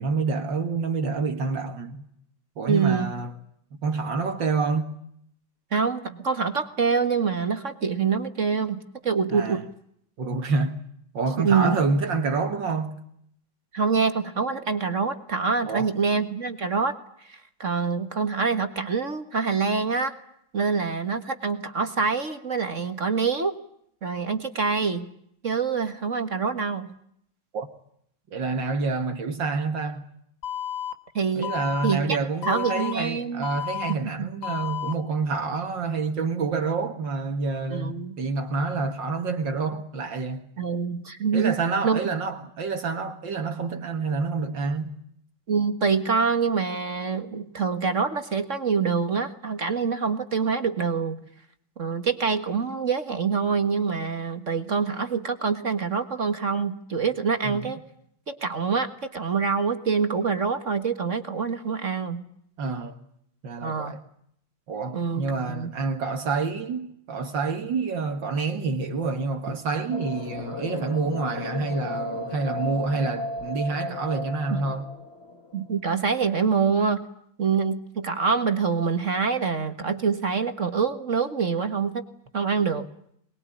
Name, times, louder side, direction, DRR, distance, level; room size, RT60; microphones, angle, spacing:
voice 1, 0.0-2.0 2.6-3.3 3.8-5.0 9.3-9.6 10.2-10.8 11.1-13.0 15.6-15.9 27.5-27.7 28.3-30.1 31.3-40.5 41.3-45.0 57.4-57.7 62.6-63.0 63.4-64.0 64.7-74.9, right 4 dB, 70° right, 2.3 m, -28 dB
voice 2, 2.7-3.1 5.7-9.6 11.4-11.8 13.7-17.0 17.2-20.1 20.5-23.5 24.0-25.1 25.4-26.9 31.1-31.5 31.8-32.2 32.5-33.5 33.9-34.3 37.7-38.2 40.6-41.6 41.8-42.0 45.5-51.2 51.8-57.8 58.3-62.2 63.6-63.9 64.9-65.7 74.5-74.6 75.5-77.1 77.4-82.0 82.3-82.9, right 5 dB, 40° right, 1.8 m, -25 dB
Alarm, 30.4-30.9 31.4-31.9 32.4-32.9 33.4-33.9 34.4-34.9, left 10 dB, 75° left, 2.5 m, -31 dB
sound 1, 69.9-75.7, left 2 dB, 35° left, 2.0 m, -34 dB
24.5 x 21.5 x 9.9 m
omnidirectional pair, 2.1 m